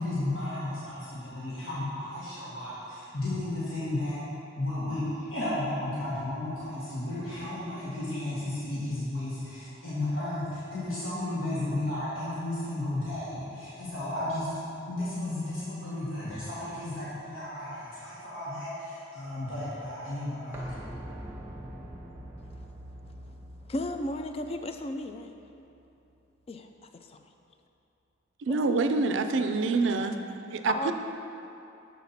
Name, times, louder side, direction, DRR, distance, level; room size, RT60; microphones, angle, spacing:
voice 1, 0.0-4.2 4.6-14.6 14.9-20.6, left 1 dB, 90° left, 1.7 m, -33 dB
sound 1, 20.5-26.2 26.5-26.6, equal, 10° right, 0.8 m, -44 dB
voice 2, 23.7-25.3 26.5-26.7 27.1-27.2 28.6-28.8 30.7-30.9, left 1 dB, 30° left, 0.3 m, -34 dB
voice 3, 28.5-30.2 30.5-30.9, right 3 dB, 60° right, 0.4 m, -26 dB
7.4 x 4.1 x 5.8 m
head